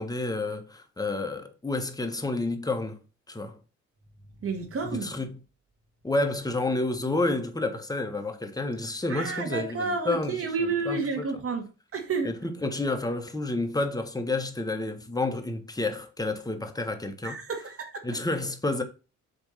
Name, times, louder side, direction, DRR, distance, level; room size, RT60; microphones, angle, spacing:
voice 1, 0.0-3.0 3.3-3.6 4.9-5.3 6.0-10.4 10.9-11.2 12.2-17.4 18.0-18.8, left 2 dB, 10° left, 1.4 m, -30 dB
voice 2, 4.4-5.1 9.1-11.7 11.9-12.3 17.2-18.0, right 4 dB, 50° right, 1.9 m, -30 dB
7.9 x 3.5 x 5.7 m
cardioid pair, 90°, 30 cm